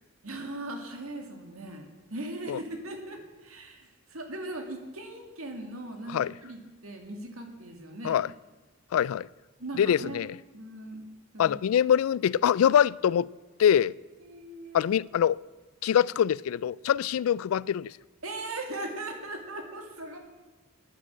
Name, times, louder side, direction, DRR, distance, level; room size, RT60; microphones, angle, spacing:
voice 1, 0.2-8.2 9.6-10.2 10.5-11.0 11.3-11.6 14.2-14.9 18.2-20.2, right 2 dB, 90° right, 2.3 m, -39 dB
voice 2, 8.9-9.3 9.8-10.4 11.4-13.3 13.6-13.9 14.7-15.4 15.8-17.9, left 9 dB, 85° left, 0.3 m, -24 dB
10.5 x 9.8 x 7.4 m
head